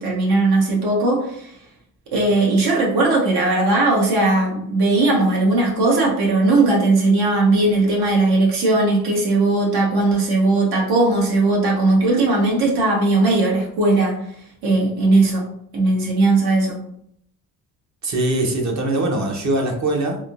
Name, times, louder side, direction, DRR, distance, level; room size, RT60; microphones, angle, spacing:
voice 1, 0.0-1.5 2.1-14.2 14.6-15.5 15.7-16.8, right 2 dB, 80° right, -2 dB, 1.2 m, -18 dB
voice 2, 18.0-20.2, right 2 dB, 50° right, 2 dB, 0.8 m, -22 dB
3.6 x 2.6 x 2.4 m, 0.70 s
cardioid pair, 135°, 37 cm